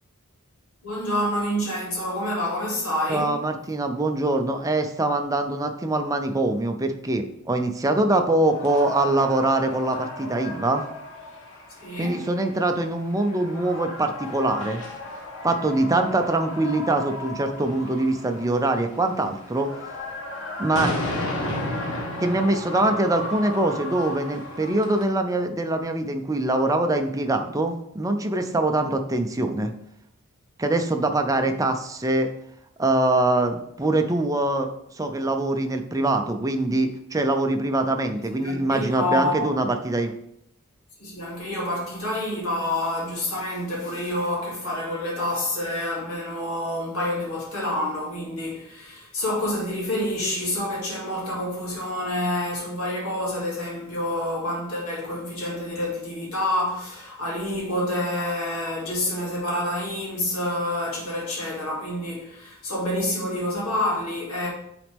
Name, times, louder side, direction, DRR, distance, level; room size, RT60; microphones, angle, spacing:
voice 1, 0.8-3.3 11.8-12.2 20.7-20.9 38.3-39.5 41.0-64.5, left 1 dB, 75° left, 2.5 m, -28 dB
voice 2, 3.1-10.8 12.0-14.8 15.4-19.7 20.6-20.9 22.2-29.7 30.6-32.3 32.8-34.7 35.0-40.1, right 2 dB, 15° right, 0.5 m, -23 dB
sound 1, 8.4-25.0, left 1 dB, 60° left, 1.4 m, -34 dB
9.0 x 4.1 x 3.5 m
head